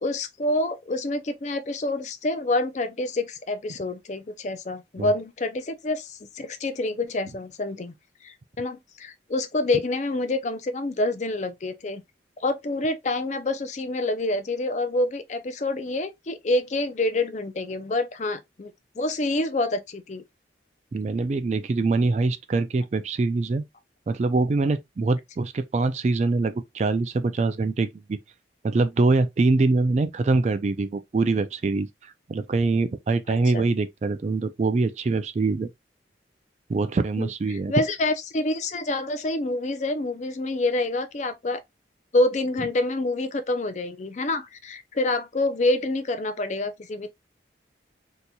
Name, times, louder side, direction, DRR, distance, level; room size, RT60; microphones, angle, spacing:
voice 1, 0.0-7.9 8.2-12.0 12.4-20.2 33.3-33.6 37.2-41.6 42.1-47.1, left 2 dB, 40° left, 0.5 m, -27 dB
voice 2, 20.9-23.6 24.1-28.2 28.6-35.7 36.7-37.7, right 3 dB, 40° right, 0.3 m, -24 dB
4.0 x 2.9 x 2.2 m
head